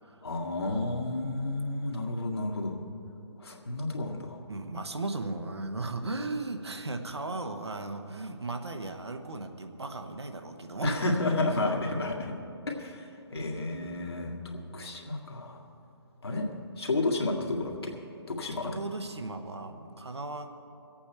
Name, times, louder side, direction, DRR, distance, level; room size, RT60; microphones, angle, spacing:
voice 1, 0.2-2.8 3.4-4.4 10.8-12.3 12.7-15.6 16.2-16.5 16.8-18.0 18.3-18.8, left 2 dB, 65° left, 0 dB, 2.0 m, -31 dB
voice 2, 4.5-11.0 18.6-20.5, right 2 dB, 70° right, 6 dB, 1.2 m, -36 dB
22.5 x 8.6 x 4.5 m, 2.8 s
figure-of-eight pair, 140°, 14 cm